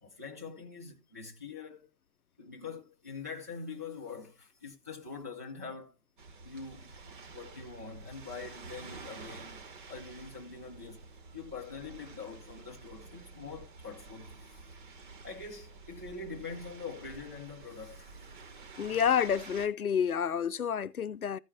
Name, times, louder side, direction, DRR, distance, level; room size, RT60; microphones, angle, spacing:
voice 1, 0.0-1.9 2.4-6.0 6.4-6.9 7.3-14.7 14.9-18.1, left 4 dB, 10° right, 0.5 m, -44 dB
sound 1, 6.2-19.7, right 4 dB, 30° right, 1.3 m, -50 dB
voice 2, 18.8-21.4, left 8 dB, 65° left, 0.7 m, -29 dB
14.5 x 5.2 x 4.4 m
figure-of-eight pair, 135°, 48 cm